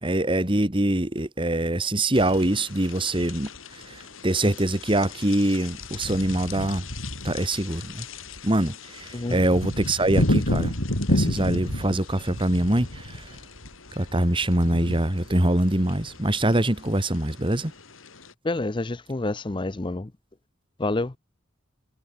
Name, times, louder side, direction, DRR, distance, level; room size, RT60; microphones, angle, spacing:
voice 1, 0.0-6.8 7.2-8.0 8.4-10.7 11.1-13.4 14.0-17.7, right 1 dB, 25° right, 1.9 m, -24 dB
sound 1, 2.2-18.3, left 1 dB, 85° left, 5.2 m, -32 dB
voice 2, 18.4-20.1 20.8-21.1, left 2 dB, 25° left, 0.6 m, -28 dB
head